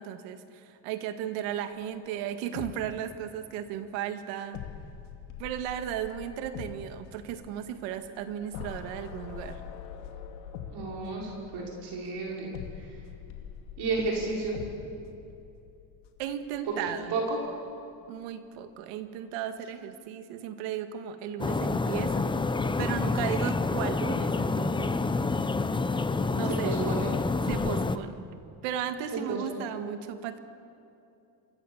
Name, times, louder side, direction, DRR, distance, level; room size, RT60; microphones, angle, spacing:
voice 1, 0.0-4.6 5.4-9.6 16.2-17.2 18.1-22.3 22.8-25.0 26.3-26.8 27.4-28.3 28.6-30.4, right 10 dB, 90° right, 8 dB, 1.9 m, -35 dB
sound 1, 1.7-3.5 3.8-3.9 4.5-17.0 17.3-17.5, left 8 dB, 85° left, 2.4 m, -44 dB
voice 2, 10.7-13.0 13.8-14.6 17.1-17.4 22.8-23.3 26.4-27.1 29.3-29.4, right 3 dB, 60° right, -2 dB, 5.8 m, -32 dB
sound 2, 21.4-28.0, left 3 dB, 10° left, 0.8 m, -28 dB
27.0 x 23.5 x 7.3 m, 2.7 s
cardioid pair, 130°, 45 cm